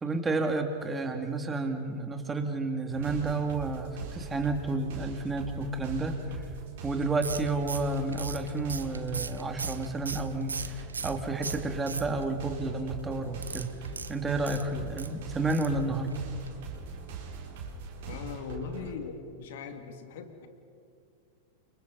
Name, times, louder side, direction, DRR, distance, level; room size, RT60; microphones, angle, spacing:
voice 1, 0.0-6.2 6.8-13.7 14.1-16.1, right 3 dB, 15° right, 4 dB, 2.7 m, -31 dB
sound 1, 2.9-18.9, right 4 dB, 60° right, 4.5 m, -42 dB
sound 2, 7.2-11.2 11.4-12.4 13.4-15.1 15.5-15.8 16.1-16.2 16.5-16.6, right 5 dB, 85° right, 0.7 m, -38 dB
voice 2, 18.1-20.5, left 6 dB, 65° left, 6 dB, 2.5 m, -40 dB
29.5 x 26.0 x 4.2 m, 2.5 s
figure-of-eight pair, 95°, 0 cm